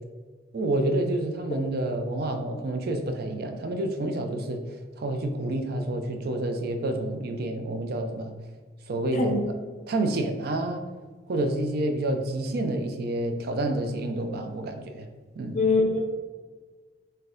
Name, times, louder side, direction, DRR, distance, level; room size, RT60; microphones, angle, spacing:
voice 1, 0.5-8.3 8.9-9.4 9.9-10.8 11.3-15.1 15.4-15.7, right 1 dB, 60° right, 6 dB, 0.4 m, -29 dB
voice 2, 15.5-16.0, left 3 dB, 40° left, 2 dB, 0.6 m, -22 dB
4.0 x 2.6 x 3.8 m, 1.4 s
head